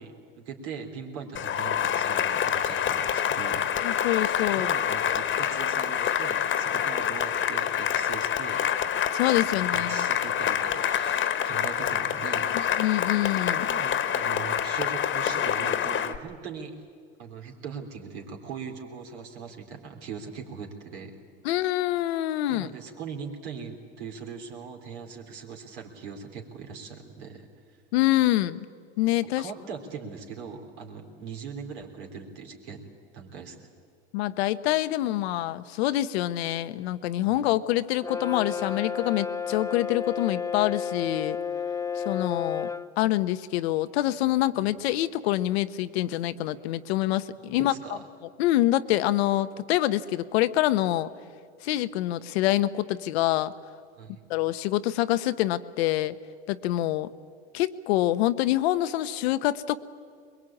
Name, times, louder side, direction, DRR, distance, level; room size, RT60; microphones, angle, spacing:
voice 1, 0.0-3.7 4.4-8.7 9.3-12.8 13.5-16.7 17.2-21.2 21.5-21.7 22.5-27.8 29.4-33.7 37.2-37.5 47.4-48.0 54.0-54.2, right 6 dB, 75° right, 2 dB, 3.6 m, -40 dB
Cheering / Applause, 1.3-16.2, left 9 dB, 35° left, 1.3 m, -27 dB
voice 2, 3.8-4.7 9.1-10.1 12.5-13.7 21.4-22.7 27.9-28.6 29.0-29.5 34.1-41.4 42.0-42.7 43.0-47.7 48.4-51.1 51.6-53.5 54.3-56.2 56.5-57.1 57.5-59.8, left 15 dB, 70° left, 13 dB, 0.9 m, -26 dB
Brass instrument, 38.0-42.9, left 6 dB, 10° left, 0.6 m, -31 dB
22.0 x 22.0 x 8.6 m, 2.1 s
hypercardioid pair, 85°, 33 cm